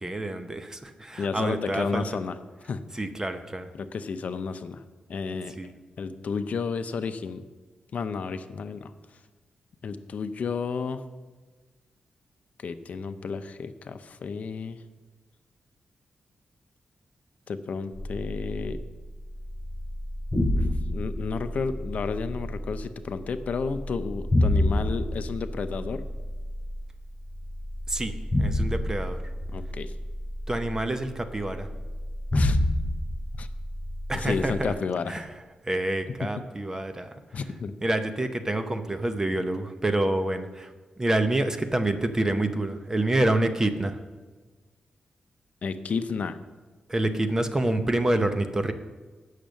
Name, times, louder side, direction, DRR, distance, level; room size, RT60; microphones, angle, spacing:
voice 1, 0.0-2.0 2.9-3.7 5.6-5.7 27.9-29.2 30.5-31.7 34.1-34.7 35.1-35.3 35.6-37.1 37.8-40.7 41.0-44.0 46.9-48.7, right 1 dB, 20° right, 8 dB, 0.7 m, -27 dB
voice 2, 1.2-2.4 2.6-2.8 3.7-4.8 5.1-5.6 6.0-7.5 7.9-8.9 9.8-11.0 12.6-14.8 17.5-18.8 20.6-26.0 29.5-29.9 32.3-32.6 33.3-33.5 34.1-35.2 36.1-36.4 37.3-37.7 45.6-46.4, left 5 dB, 65° left, 11 dB, 0.6 m, -32 dB
sound 1, 17.9-34.7, left 1 dB, 15° left, 3.5 m, -29 dB
8.7 x 6.5 x 6.3 m, 1.3 s
cardioid pair, 95°, 3 cm